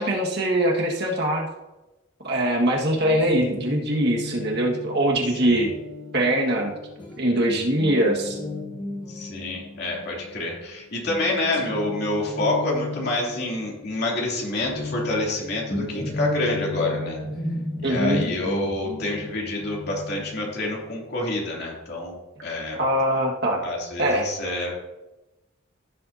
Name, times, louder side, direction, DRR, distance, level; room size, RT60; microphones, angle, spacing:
voice 1, 0.0-1.5 2.2-5.7 6.1-6.7 7.2-8.4 17.8-18.2 22.8-23.6 24.0-24.3, right 1 dB, 55° right, -1 dB, 1.7 m, -22 dB
Guitar, 3.0-10.7 11.0-21.5, left 2 dB, 20° left, 1.8 m, -34 dB
voice 2, 9.1-17.2 17.8-22.2 22.4-22.8 23.6-24.7, left 2 dB, 50° left, -3 dB, 2.9 m, -27 dB
15.5 x 7.7 x 2.8 m, 1.0 s
head